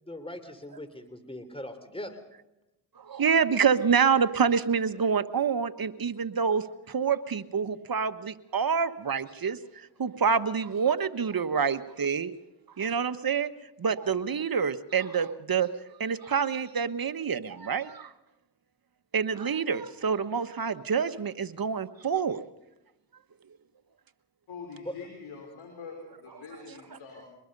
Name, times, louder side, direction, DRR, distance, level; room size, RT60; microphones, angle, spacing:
voice 1, 0.0-2.2 24.8-25.0, left 1 dB, 10° left, 10 dB, 3.4 m, -40 dB
voice 2, 3.0-12.3 12.8-13.5 13.8-15.7 16.0-18.1 19.1-22.4, right 6 dB, 45° right, 10 dB, 1.4 m, -27 dB
voice 3, 24.5-27.3, left 5 dB, 75° left, 1 dB, 4.8 m, -44 dB
24.5 x 21.0 x 5.5 m, 0.93 s
supercardioid pair, 50°, 49 cm